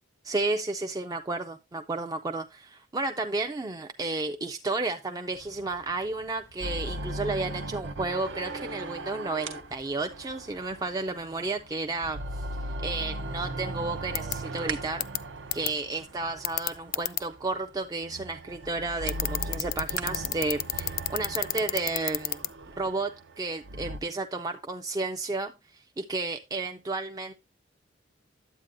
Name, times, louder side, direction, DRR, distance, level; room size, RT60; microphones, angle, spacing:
voice 1, 0.2-12.5 12.8-15.0 15.5-22.5 22.8-27.3, right 3 dB, 20° right, 0.4 m, -32 dB
sound 1, 5.3-22.9, right 6 dB, 90° right, 1.2 m, -48 dB
sound 2, 6.6-11.6 11.9-17.2 18.0-24.0, right 1 dB, 65° right, 0.6 m, -38 dB
sound 3, 14.2-14.3 15.0-15.2 15.5-15.7 16.4-17.2 19.1-22.5, left 15 dB, 50° left, 0.4 m, -28 dB
9.9 x 8.2 x 2.5 m
head